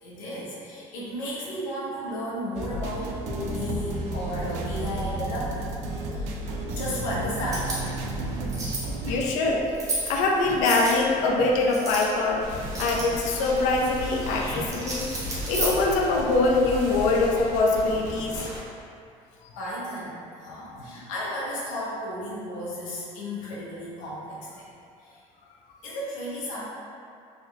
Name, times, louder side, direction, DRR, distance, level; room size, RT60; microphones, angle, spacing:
voice 1, 0.0-5.7 6.1-6.4 6.7-7.9 19.6-24.7 25.0-25.2 25.8-26.6, left 1 dB, 90° left, -7 dB, 0.9 m, -34 dB
sound 1, 2.5-9.3, right 2 dB, 60° right, 0.4 m, -32 dB
sound 2, 7.4-16.3, right 2 dB, 25° right, 0.7 m, -35 dB
voice 2, 9.0-9.7 10.1-12.5 12.8-15.1 15.4-18.5, left 3 dB, 70° left, -1 dB, 0.4 m, -23 dB
sound 3, 12.4-18.6, equal, 75° right, 1.0 m, -36 dB
3.1 x 2.1 x 3.7 m, 2.4 s
cardioid pair, 170°, 13 cm